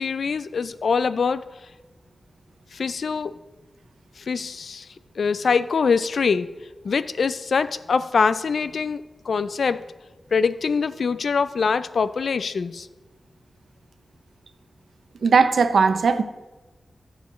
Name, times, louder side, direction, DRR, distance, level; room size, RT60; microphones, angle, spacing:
voice 1, 0.0-1.4 2.7-3.4 4.2-4.9 5.2-6.5 6.8-9.9 10.3-12.9, left 5 dB, 80° left, 14 dB, 0.4 m, -24 dB
voice 2, 15.2-16.2, right 5 dB, 90° right, 10 dB, 0.6 m, -18 dB
16.5 x 7.1 x 3.1 m, 1.2 s
wide cardioid pair, 100°, 0 cm